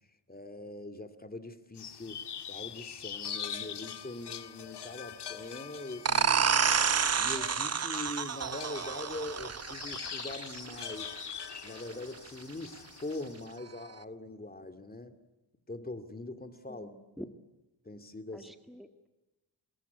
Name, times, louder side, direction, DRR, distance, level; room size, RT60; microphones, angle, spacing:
voice 1, 0.3-2.2 2.5-6.5 7.2-11.2 11.6-15.2 15.7-17.3 17.8-18.5, left 2 dB, 20° left, 8 dB, 2.6 m, -42 dB
sound 1, 1.8-13.5, left 8 dB, 75° left, 1.6 m, -43 dB
sound 2, 6.0-11.4, right 7 dB, 40° right, 0.8 m, -29 dB
voice 2, 16.7-17.3 18.3-19.1, equal, ahead, 7 dB, 1.7 m, -48 dB
27.0 x 21.5 x 9.6 m, 1.0 s
cardioid pair, 90°, 41 cm